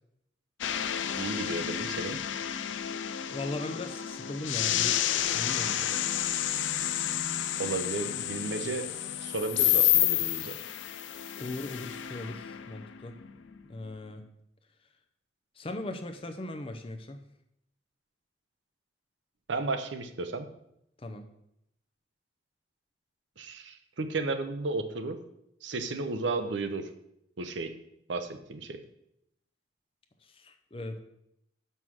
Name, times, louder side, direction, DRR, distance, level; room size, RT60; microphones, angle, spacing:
sound 1, 0.6-13.6, left 11 dB, 80° left, 0.5 m, -30 dB
voice 1, 1.1-2.2 7.6-8.9 9.2-10.6 19.5-20.5 23.4-25.2 25.6-26.9 27.4-27.7 28.1-28.8, right 3 dB, 75° right, 8 dB, 0.8 m, -33 dB
voice 2, 3.3-5.0 5.3-5.9 11.4-13.1 13.7-14.2 15.6-17.2 21.0-21.2 30.2-31.0, left 2 dB, 30° left, 6 dB, 0.6 m, -38 dB
6.1 x 5.5 x 6.2 m, 0.79 s
head